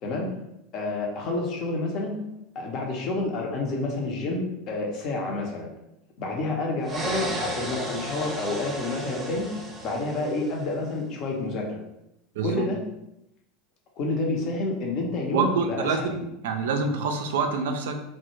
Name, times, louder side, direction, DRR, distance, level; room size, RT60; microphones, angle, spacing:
voice 1, 0.7-2.2 2.5-5.7 6.2-9.5 9.8-11.8 12.4-12.8 14.0-16.1, left 2 dB, 50° left, 0 dB, 0.6 m, -29 dB
sound 1, 6.8-10.7, right 1 dB, 20° right, 0.6 m, -34 dB
voice 2, 12.4-12.7 15.3-18.0, right 4 dB, 70° right, 5 dB, 0.3 m, -26 dB
2.1 x 2.1 x 3.0 m, 0.85 s
figure-of-eight pair, 80°, 0 cm